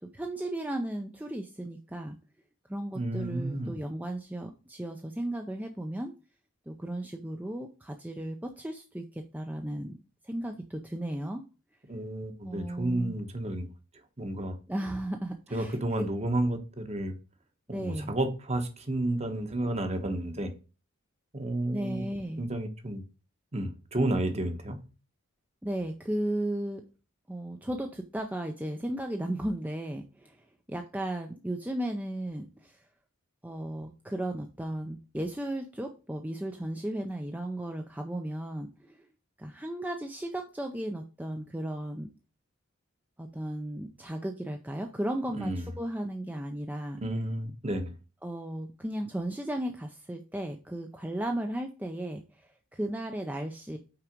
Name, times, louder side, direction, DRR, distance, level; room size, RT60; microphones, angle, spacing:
voice 1, 0.0-2.2 2.7-6.1 6.7-10.0 10.2-11.4 12.4-13.2 14.7-15.8 17.7-18.1 21.7-22.4 25.6-26.8 27.3-32.8 33.4-39.0 39.4-42.1 43.2-47.0 48.2-53.8, right 1 dB, 10° right, 4 dB, 0.5 m, -35 dB
voice 2, 2.9-3.8 11.9-13.7 14.2-14.6 15.5-17.2 17.7-20.5 21.3-22.1 22.4-23.0 23.5-24.8 45.3-45.6 47.0-47.9, right 1 dB, 30° right, 7 dB, 1.1 m, -31 dB
5.8 x 4.7 x 5.2 m, 0.32 s
head